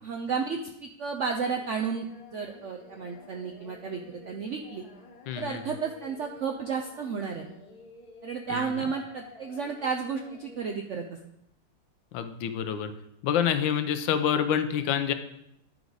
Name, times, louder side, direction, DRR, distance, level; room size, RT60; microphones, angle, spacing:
voice 1, 0.0-2.1 2.3-4.8 5.3-7.4 8.2-11.0, right 5 dB, 75° right, 3 dB, 0.6 m, -32 dB
Singing, 1.4-10.8, left 3 dB, 60° left, 1.6 m, -51 dB
voice 2, 5.3-5.7 8.5-8.7 12.1-12.9 13.2-15.1, left 8 dB, 85° left, 10 dB, 1.4 m, -27 dB
10.5 x 4.8 x 3.9 m, 0.79 s
omnidirectional pair, 2.0 m